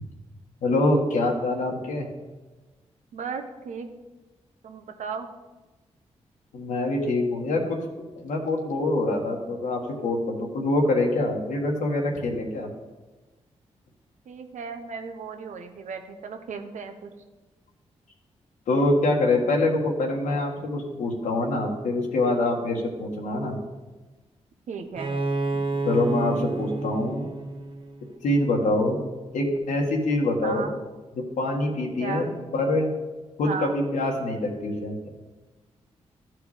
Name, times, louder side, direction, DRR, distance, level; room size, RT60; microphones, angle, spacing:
voice 1, 0.6-2.1 6.5-7.8 8.2-12.7 18.7-23.6 25.8-27.3 28.2-29.0 29.3-30.7 31.2-32.2 32.5-32.9 33.4-34.9, left 2 dB, 85° left, 0 dB, 1.6 m, -25 dB
voice 2, 3.1-3.9 4.6-5.3 14.3-17.1 24.7-25.2 30.4-30.7 32.0-32.3 33.4-33.7, right 5 dB, 75° right, 6 dB, 1.0 m, -35 dB
Bowed string instrument, 25.0-28.6, right 2 dB, 40° right, 1.4 m, -30 dB
13.5 x 4.7 x 5.0 m, 1.2 s
supercardioid pair, 45°, 13 cm